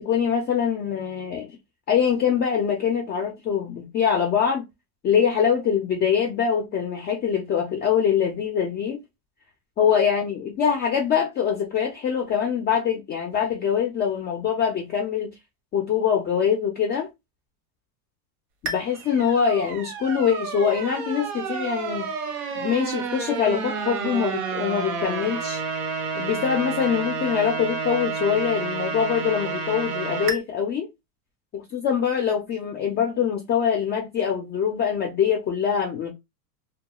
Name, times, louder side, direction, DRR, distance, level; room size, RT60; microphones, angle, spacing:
voice 1, 0.1-1.5 1.9-4.7 5.0-9.0 9.8-15.3 15.7-17.1 18.6-22.1 22.6-25.6 26.1-30.9 31.5-36.1, left 7 dB, 25° left, 0.3 m, -24 dB
sound 1, 18.7-30.4, right 5 dB, 75° right, 0.9 m, -30 dB
2.3 x 2.2 x 2.8 m
supercardioid pair, 125°, 44 cm